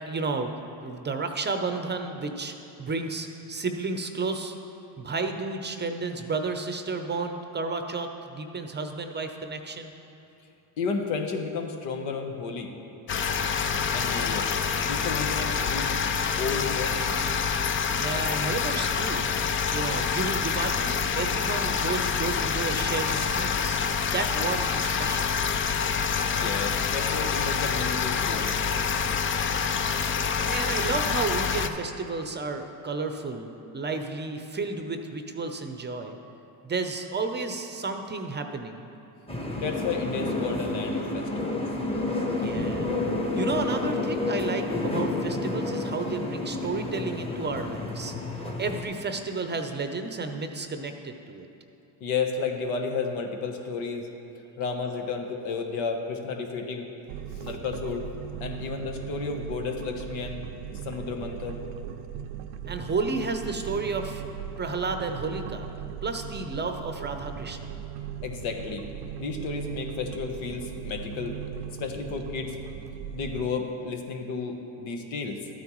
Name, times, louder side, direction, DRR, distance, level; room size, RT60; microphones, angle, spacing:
voice 1, 0.1-0.5 0.8-4.6 5.0-9.9 17.9-19.3 19.7-23.8 24.1-25.3 30.5-36.1 36.6-38.9 42.3-42.9 43.4-48.1 48.6-51.5 62.7-64.2 64.6-65.7 66.0-67.7, right 3 dB, 25° right, 6 dB, 0.6 m, -32 dB
voice 2, 10.8-12.7 13.9-14.5 14.9-15.9 16.4-17.0 26.3-28.5 39.6-41.6 52.0-54.1 54.6-56.9 57.4-58.1 58.4-60.4 60.8-61.6 68.2-68.8 69.2-71.3 71.8-72.5 73.1-75.4, left 5 dB, 75° left, 3 dB, 1.2 m, -32 dB
sound 1, 13.1-31.7, left 6 dB, 30° left, 0.4 m, -27 dB
sound 2, 39.3-48.8, left 2 dB, 10° left, 1.2 m, -30 dB
sound 3, 57.1-73.5, right 8 dB, 75° right, 0.6 m, -38 dB
12.5 x 9.2 x 3.1 m, 2.8 s
supercardioid pair, 85°, 47 cm